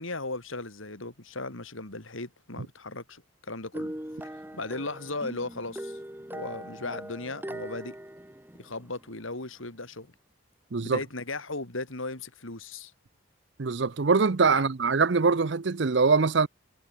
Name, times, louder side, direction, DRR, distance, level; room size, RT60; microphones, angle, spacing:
voice 1, 0.0-3.9 4.5-6.0 6.3-7.9 8.6-10.1 10.8-12.9 14.5-14.6, left 2 dB, 70° left, 3.3 m, -36 dB
sound 1, 3.7-9.2, right 1 dB, 10° right, 1.1 m, -40 dB
voice 2, 13.6-16.5, right 4 dB, 55° right, 0.6 m, -23 dB
head